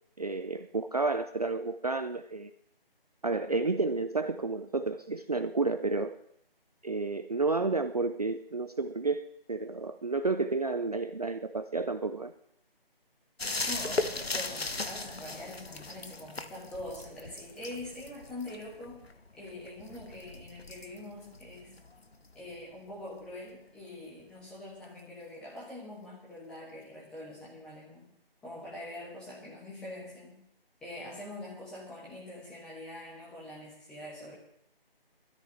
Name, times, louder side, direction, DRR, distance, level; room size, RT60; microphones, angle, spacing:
voice 1, 0.2-2.5 3.2-6.2 6.8-12.3, right 3 dB, 40° right, 9 dB, 0.5 m, -31 dB
sound 1, 13.4-22.8 24.8-24.9, left 3 dB, 85° left, 1.1 m, -38 dB
voice 2, 13.7-19.1 19.4-21.7 22.3-28.1 28.4-30.4 30.8-34.3, left 1 dB, 5° left, -6 dB, 1.4 m, -44 dB
20.0 x 13.5 x 3.2 m, 0.69 s
figure-of-eight pair, 160°, 30 cm